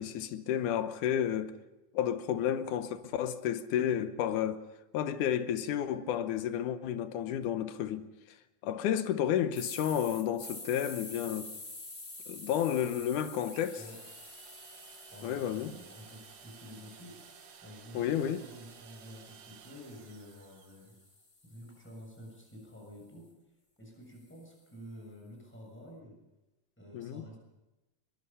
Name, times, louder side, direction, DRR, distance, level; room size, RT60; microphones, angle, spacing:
voice 1, 0.0-1.5 1.9-4.6 4.9-8.1 8.6-11.5 12.3-13.8 15.2-15.7 17.9-18.4 26.9-27.2, left 10 dB, 75° left, 2.4 m, -31 dB
sound 1, 9.5-17.6 18.1-22.3, left 2 dB, 20° left, 1.4 m, -49 dB
sound 2, 13.5-21.1, right 8 dB, 80° right, 3.0 m, -55 dB
voice 2, 15.1-17.1 17.6-20.9 21.4-23.2 23.8-26.2 26.8-27.4, equal, 5° left, 6.7 m, -50 dB
22.5 x 22.5 x 5.6 m
omnidirectional pair, 3.7 m